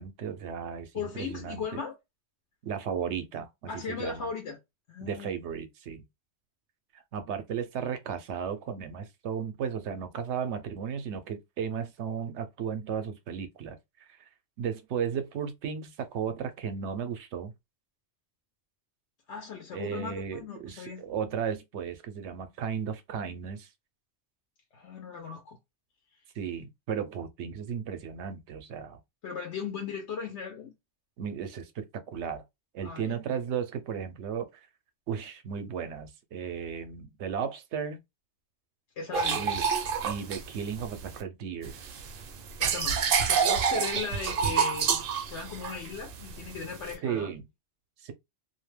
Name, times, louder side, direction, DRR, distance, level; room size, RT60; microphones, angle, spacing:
voice 1, 0.0-1.8 2.6-3.5 3.9-4.3 5.0-6.0 7.1-13.8 14.1-14.2 14.6-17.5 19.7-23.7 26.4-29.0 31.2-32.4 32.7-34.5 35.1-38.0 39.4-39.7 40.0-41.8 43.8-43.9 47.0-47.4 48.0-48.1, right 7 dB, 90° right, 0.9 m, -35 dB
voice 2, 0.9-1.9 3.7-4.6 4.9-5.3 19.3-21.0 24.7-25.6 29.2-30.7 32.8-33.2 39.0-39.4 42.6-43.0 43.3-47.3, left 5 dB, 80° left, 1.0 m, -37 dB
sound 1, 39.1-41.2 41.6-46.9, right 6 dB, 60° right, 0.7 m, -28 dB
2.5 x 2.1 x 3.2 m
omnidirectional pair, 1.1 m